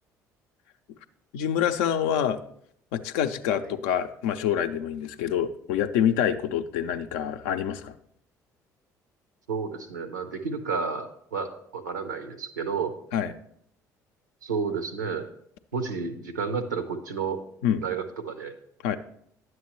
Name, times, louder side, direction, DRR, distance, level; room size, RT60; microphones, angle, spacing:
voice 1, 1.3-2.4 2.9-7.9 13.1-13.3 17.6-17.8 18.8-19.0, left 9 dB, 70° left, 9 dB, 0.5 m, -26 dB
voice 2, 9.5-12.9 14.4-15.3 15.7-17.4 17.8-18.5, right 5 dB, 85° right, 9 dB, 0.7 m, -31 dB
10.5 x 7.7 x 3.0 m, 0.69 s
figure-of-eight pair, 55°, 9 cm